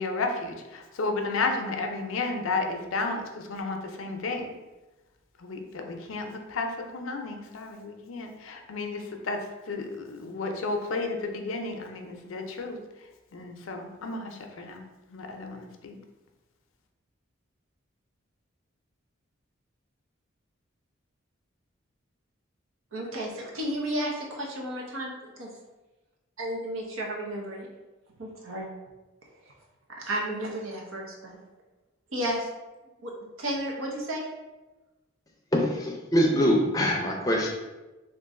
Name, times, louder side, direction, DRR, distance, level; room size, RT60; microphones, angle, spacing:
voice 1, 0.0-4.5 5.4-9.4 9.7-12.8 13.3-14.8 15.1-16.0, left 3 dB, 80° left, 4 dB, 0.5 m, -32 dB
voice 2, 22.9-25.1 25.4-25.5 26.4-27.7 28.2-28.7 30.0-31.4 32.1-32.5 33.0-33.1 33.4-34.3, right 1 dB, 85° right, -1 dB, 0.7 m, -32 dB
voice 3, 35.5-37.5, equal, 15° left, -1 dB, 0.4 m, -24 dB
3.0 x 2.5 x 3.6 m, 1.1 s
head